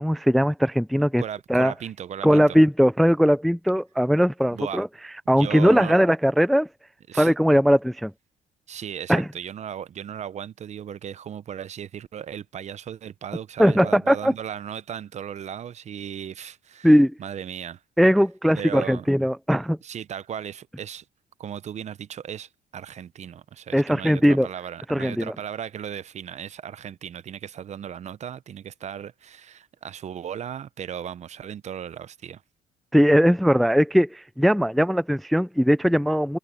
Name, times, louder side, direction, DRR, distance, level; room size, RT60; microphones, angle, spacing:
voice 1, 0.0-1.2 1.5-1.7 2.2-4.9 5.3-6.7 7.1-8.1 9.1-9.3 13.6-14.3 16.8-17.1 18.0-19.8 23.7-24.5 24.9-25.3 32.9-36.4, equal, ahead, 0.4 m, -19 dB
voice 2, 1.2-2.6 4.5-4.8 5.4-6.0 7.1-7.3 8.7-16.9 17.2-17.8 18.6-19.1 19.8-21.0 21.4-32.4, right 9 dB, 40° right, 0.7 m, -36 dB
cardioid pair, 110°, 17 cm